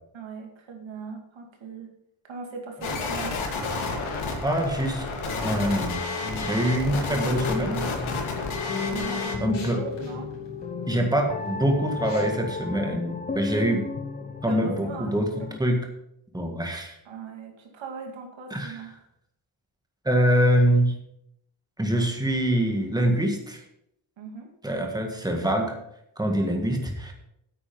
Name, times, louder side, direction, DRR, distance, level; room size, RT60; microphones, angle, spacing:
voice 1, 0.1-1.9 2.2-3.4 8.9-10.3 13.5-13.7 14.5-15.5 17.0-18.9 24.2-24.5, right 4 dB, 70° right, 2 dB, 2.6 m, -39 dB
sound 1, 2.8-9.4, left 3 dB, 90° left, 2.5 m, -30 dB
voice 2, 4.4-5.1 5.4-6.1 6.4-7.8 9.4-9.8 10.9-13.8 14.4-15.3 15.6-15.8 16.3-17.0 18.5-18.8 20.1-20.9 21.8-23.6 24.6-25.8 26.2-27.1, right 1 dB, 10° right, 2 dB, 1.8 m, -24 dB
sound 2, 6.2-7.1 7.9-8.3 8.7-12.4, left 2 dB, 60° left, 4.7 m, -44 dB
sound 3, 7.1-15.6, left 4 dB, 20° left, 0.6 m, -34 dB
9.1 x 8.7 x 5.5 m, 0.77 s
wide cardioid pair, 155°, 47 cm